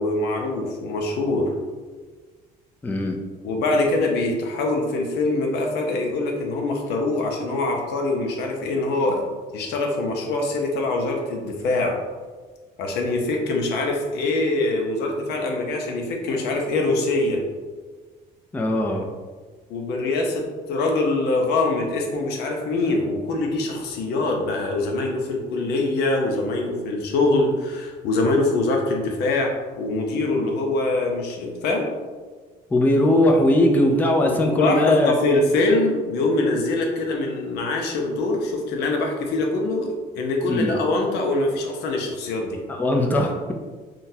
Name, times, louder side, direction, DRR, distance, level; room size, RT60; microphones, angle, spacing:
voice 1, 0.0-1.5 3.4-9.3 9.5-12.0 12.8-17.4 19.7-31.9 34.2-42.6, left 2 dB, 80° left, 1 dB, 0.6 m, -24 dB
voice 2, 2.8-3.2 18.5-19.1 32.7-35.1 40.5-40.8 42.7-43.5, left 1 dB, 10° left, 2 dB, 0.3 m, -19 dB
3.8 x 2.2 x 2.7 m, 1.4 s
cardioid pair, 110°, 17 cm